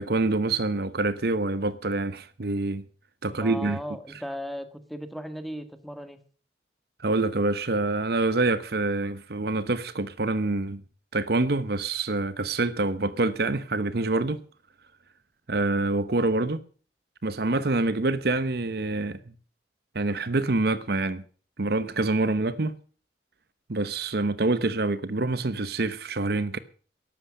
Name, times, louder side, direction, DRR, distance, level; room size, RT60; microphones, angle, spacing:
voice 1, 0.0-2.8 3.2-3.8 7.0-10.8 11.1-14.4 15.5-16.6 17.2-19.2 19.9-21.2 21.6-22.8 23.7-26.6, right 2 dB, 60° right, 0.9 m, -26 dB
voice 2, 3.3-6.2, equal, ahead, 1.6 m, -37 dB
14.0 x 11.5 x 6.5 m
head